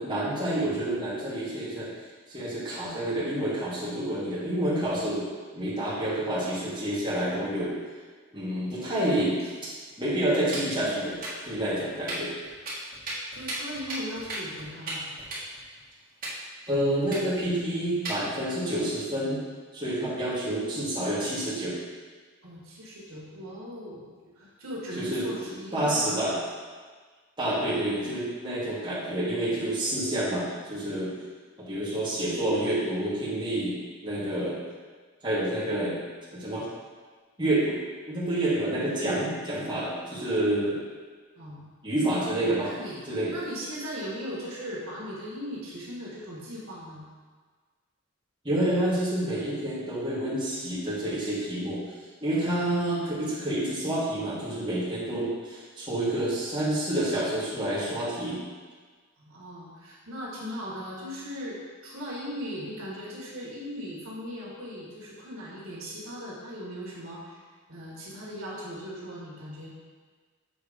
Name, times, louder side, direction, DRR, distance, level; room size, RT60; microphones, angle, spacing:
voice 1, 0.0-1.9 2.3-5.3 5.5-7.7 8.3-9.4 10.0-11.2 11.4-12.3 16.7-19.4 19.7-21.8 25.0-25.3 25.7-26.4 27.4-31.1 31.7-33.8 34.0-34.6 35.2-36.0 36.3-36.7 37.4-37.8 38.1-40.8 41.8-42.7 43.1-43.3 48.4-51.8 52.2-58.4, right 1 dB, 20° right, -10 dB, 1.8 m, -28 dB
voice 2, 8.9-9.3 13.3-15.1 22.4-24.1 24.3-26.0 41.4-41.7 42.6-43.0 43.3-47.0 59.2-67.4 67.7-69.7, equal, 75° right, -5 dB, 1.7 m, -38 dB
sound 1, 9.9-10.8 11.1-11.8 12.1-12.2 12.4-14.9 15.2-15.8 16.2-16.3 16.7-16.8 17.0-18.2 18.5-18.7, right 2 dB, 40° right, 1.6 m, -37 dB
7.0 x 3.5 x 5.1 m, 1.5 s
head